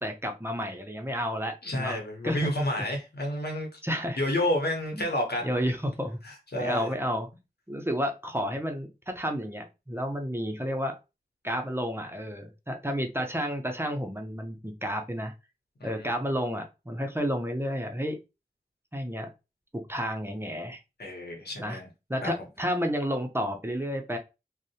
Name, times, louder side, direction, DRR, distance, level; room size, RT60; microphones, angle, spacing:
voice 1, 0.0-2.5 2.8-2.9 3.8-4.2 4.9-5.1 5.4-6.2 6.6-7.3 7.7-10.9 11.4-15.3 15.8-18.2 18.9-19.3 19.7-20.8 21.6-21.8 22.1-24.2, equal, 15° right, 0.5 m, -31 dB
voice 2, 1.6-3.8 4.2-5.5 6.2-6.9 15.8-16.2 21.0-21.9 22.2-22.3, left 1 dB, 85° left, 0.8 m, -30 dB
2.6 x 2.0 x 2.7 m
wide cardioid pair, 45°, 16 cm